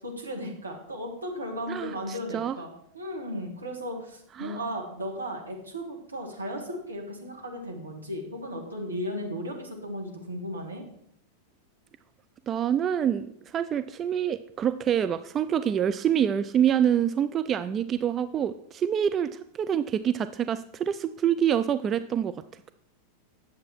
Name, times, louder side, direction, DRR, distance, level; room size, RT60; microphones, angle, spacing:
voice 1, 0.0-10.8, equal, 80° right, 0 dB, 1.9 m, -35 dB
voice 2, 1.7-2.6 4.4-4.6 12.5-22.3, right 9 dB, 25° right, 12 dB, 0.3 m, -26 dB
9.3 x 7.3 x 4.5 m, 0.71 s
figure-of-eight pair, 90°, 0 cm